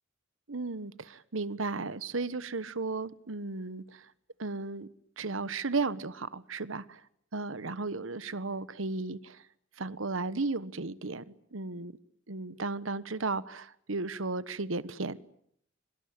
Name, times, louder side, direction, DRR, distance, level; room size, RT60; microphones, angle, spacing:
voice 1, 0.5-4.1 4.4-4.9 5.2-7.0 7.3-9.4 9.8-11.9 12.3-15.2, right 3 dB, 80° right, 1.2 m, -35 dB
25.5 x 24.5 x 8.8 m
head